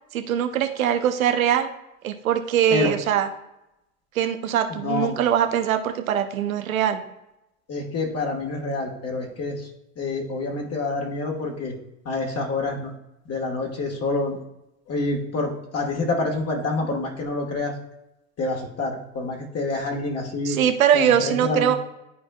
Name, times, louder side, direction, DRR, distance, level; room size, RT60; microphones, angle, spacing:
voice 1, 0.1-1.7 2.0-3.3 4.1-7.0 20.4-21.8, right 9 dB, 90° right, 7 dB, 0.8 m, -22 dB
voice 2, 4.7-5.1 7.7-9.7 10.0-11.7 12.0-12.9 13.2-14.4 14.9-17.7 18.4-20.6 20.9-21.8, left 3 dB, 35° left, 0 dB, 1.6 m, -27 dB
12.0 x 4.3 x 2.3 m, 0.90 s
hypercardioid pair, 85°, 40 cm